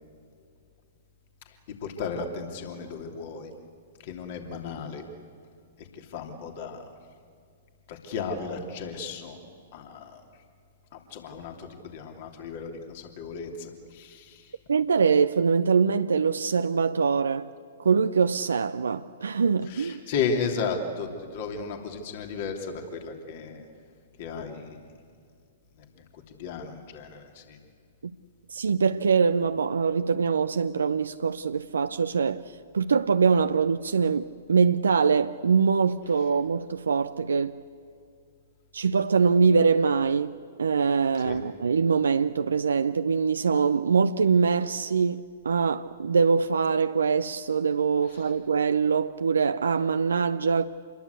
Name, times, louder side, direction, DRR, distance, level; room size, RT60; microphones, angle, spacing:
voice 1, 1.8-3.5 4.0-5.0 6.1-6.8 7.9-9.4 9.7-10.2 11.1-11.7 11.9-14.4 19.7-23.6 24.2-24.8 26.4-27.6 41.2-41.4, left 5 dB, 50° left, 3.1 m, -34 dB
voice 2, 14.7-17.5 17.8-20.0 28.5-32.4 32.7-37.6 38.7-50.7, right 5 dB, 75° right, 0.6 m, -23 dB
27.0 x 22.0 x 8.3 m
figure-of-eight pair, 110°, 0 cm